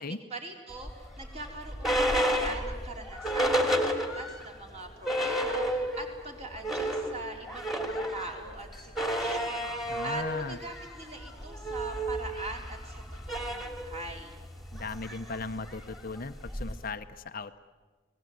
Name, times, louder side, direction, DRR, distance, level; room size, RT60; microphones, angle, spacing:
voice 1, 0.0-14.4, right 2 dB, 30° right, 2 dB, 4.2 m, -42 dB
sound 1, 0.8-4.5 4.8-4.9 5.0-6.1 6.4-16.9, equal, ahead, 2.6 m, -31 dB
voice 2, 9.9-10.6 14.7-17.6, left 3 dB, 45° left, 9 dB, 0.8 m, -37 dB
30.0 x 19.5 x 9.5 m, 1.3 s
head